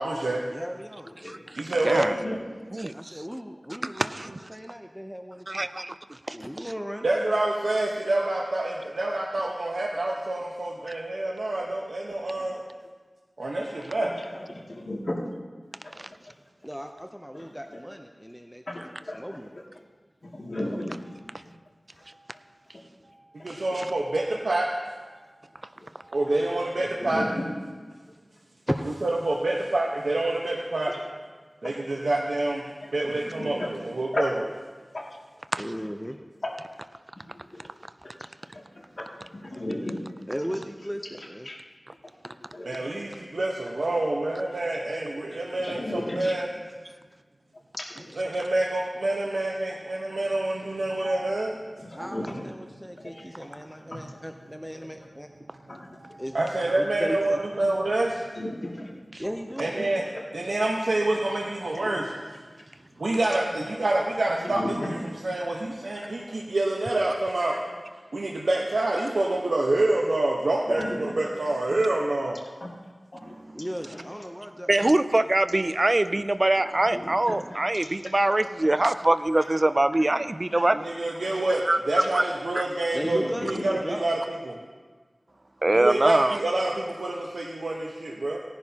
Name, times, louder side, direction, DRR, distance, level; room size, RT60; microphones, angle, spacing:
voice 1, 0.0-0.4 1.6-2.1 7.0-12.6 13.4-14.1 23.4-24.7 26.1-27.2 29.0-30.9 31.6-32.6 32.9-34.3 42.6-46.5 48.2-51.6 56.3-58.2 59.6-60.0 60.3-62.0 63.0-64.6 65.2-67.5 68.1-70.8 71.2-72.4 80.7-84.6 85.7-88.4, right 2 dB, 85° right, -2 dB, 1.1 m, -27 dB
voice 2, 0.5-1.1 2.9-4.1 4.5-5.7 6.3-7.1 16.6-18.6 19.2-19.5 28.7-28.8 35.6-36.2 40.3-41.5 51.9-55.3 56.2-56.4 56.8-57.4 59.2-59.7 73.6-75.0 75.2-75.3 77.0-77.1 82.9-84.0, equal, ahead, 4 dB, 0.7 m, -36 dB
voice 3, 1.0-1.5 1.9-2.4 11.6-11.7 12.1-12.6 13.5-13.7 14.0-15.2 15.8-16.4 17.3-17.5 18.7-19.2 19.5-19.6 20.2-21.1 21.4-21.5 23.4-23.8 25.8-25.9 26.2-26.5 26.8-27.5 30.9-31.0 31.6-32.0 32.8-33.7 34.1-34.3 34.9-35.2 35.7-36.1 36.4-36.8 37.2-37.7 38.2-40.1 41.2-41.6 42.0-42.9 45.5-46.4 47.8-48.2 51.0-51.1 51.8-52.5 53.0-53.6 53.9-54.1 54.7-54.8 55.7-56.2 58.3-58.9 59.2-59.3 60.1-60.2 61.7-62.0 62.5-62.6 63.2-63.3 64.4-65.0 65.9-66.4 67.5-67.6 69.2-69.4 70.6-71.2 71.7-71.8 72.6-72.7 73.1-73.4 73.9-74.4 75.5-75.7 76.6-79.0 79.4-79.5 80.0-80.1 80.5-80.7 81.1-81.5 81.9-82.3 83.0-83.6, left 1 dB, 55° left, -3 dB, 2.4 m, -37 dB
voice 4, 1.8-2.1 2.7-3.2 3.8-4.3 5.5-5.9 6.3-6.4 16.0-16.1 23.5-23.8 35.5-35.6 74.7-80.8 81.6-81.8 82.1-82.2 85.6-86.4, right 2 dB, 40° right, 11 dB, 0.4 m, -23 dB
18.0 x 10.5 x 2.9 m, 1.4 s
wide cardioid pair, 50°, 0 cm